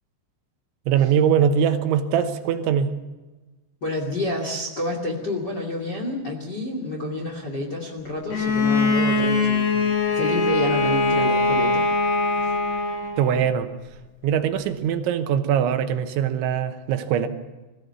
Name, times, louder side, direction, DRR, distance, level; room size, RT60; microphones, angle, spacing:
voice 1, 0.9-2.9 13.2-13.7 14.2-17.3, right 8 dB, 80° right, 3.3 m, -22 dB
voice 2, 3.8-9.8 10.1-11.8 12.4-12.5, left 2 dB, 30° left, 2.3 m, -29 dB
Bowed string instrument, 8.3-13.4, left 2 dB, 45° left, 2.5 m, -22 dB
22.5 x 15.0 x 8.1 m
omnidirectional pair, 5.5 m